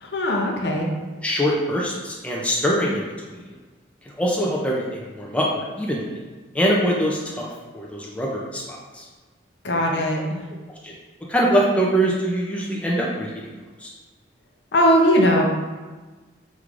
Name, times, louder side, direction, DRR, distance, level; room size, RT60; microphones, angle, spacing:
voice 1, 0.0-0.9 9.6-10.4 14.7-15.4, equal, 65° left, 0 dB, 0.6 m, -19 dB
voice 2, 1.2-3.4 4.2-6.1 6.5-7.5 7.7-9.0 10.8-10.9 11.3-13.5 13.8-13.9, equal, 5° left, -4 dB, 0.4 m, -23 dB
5.0 x 3.1 x 2.5 m, 1.3 s
head